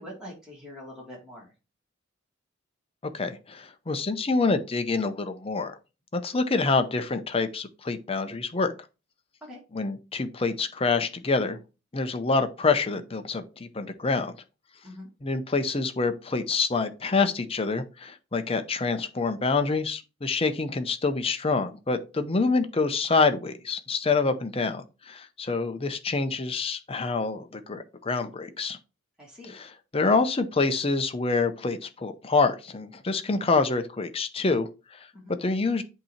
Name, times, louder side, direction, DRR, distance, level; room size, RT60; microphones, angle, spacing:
voice 1, 0.0-1.5 9.4-9.6 14.8-15.1 29.2-29.5 35.1-35.4, left 1 dB, 5° right, 2.1 m, -43 dB
voice 2, 3.1-5.8 6.1-8.7 9.7-11.6 11.9-14.4 15.2-28.8 29.5-35.1 35.4-35.8, left 4 dB, 25° left, 0.6 m, -26 dB
8.1 x 2.9 x 4.3 m
head